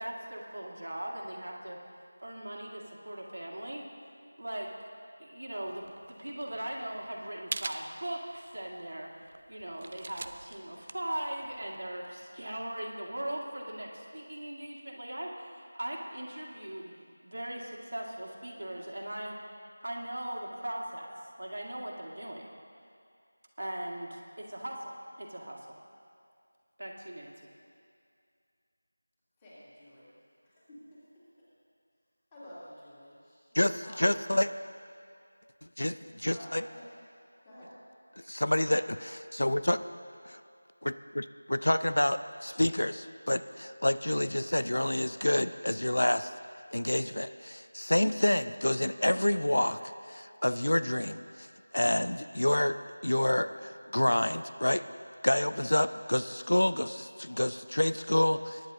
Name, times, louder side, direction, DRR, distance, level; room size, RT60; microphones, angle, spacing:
voice 1, 0.0-1.8 2.2-3.9 4.4-4.7 5.2-16.9 17.2-19.4 19.8-22.5 23.6-25.7 26.8-27.5, right 1 dB, 65° right, -1 dB, 2.0 m, -39 dB
sound 1, 5.7-12.1, right 2 dB, 35° right, 0.4 m, -44 dB
voice 2, 29.4-30.1 30.4-31.2 32.3-34.0 35.9-36.0 36.3-36.9 37.4-37.7, equal, 15° left, -11 dB, 2.9 m, -51 dB
voice 3, 33.5-34.5 35.8-36.6 38.2-39.8 40.2-40.4 40.8-46.3 46.7-51.5 51.7-52.8 53.0-54.9 55.2-58.6, left 1 dB, 75° left, 13 dB, 0.4 m, -28 dB
22.0 x 10.0 x 2.8 m, 2.3 s
figure-of-eight pair, 170°, 0 cm